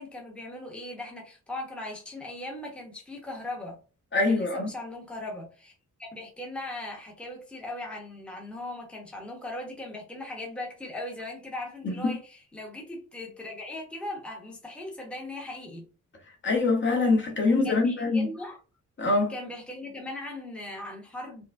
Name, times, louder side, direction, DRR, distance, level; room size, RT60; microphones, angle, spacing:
voice 1, 0.0-3.8 4.3-15.9 17.4-18.6 19.3-21.5, left 1 dB, 5° left, 0.8 m, -39 dB
voice 2, 4.1-4.7 11.8-12.2 16.4-18.3 19.0-19.3, left 3 dB, 35° left, 0.9 m, -24 dB
4.5 x 2.2 x 2.5 m
wide cardioid pair, 175°, 33 cm